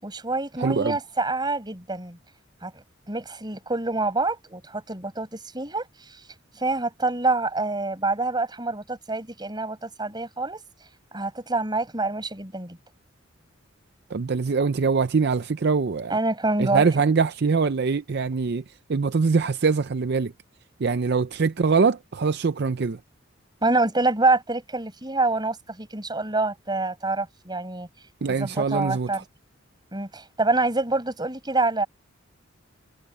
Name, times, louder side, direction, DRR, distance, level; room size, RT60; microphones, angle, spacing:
voice 1, 0.0-2.2 2.6-5.9 6.6-10.6 11.1-12.8 16.1-16.8 23.6-27.9 28.2-29.2 29.9-31.9, right 2 dB, 20° right, 6.6 m, -26 dB
voice 2, 0.6-1.0 14.1-16.2 16.6-18.6 18.9-20.3 20.8-23.0 28.2-29.2, right 5 dB, 55° right, 0.5 m, -23 dB
head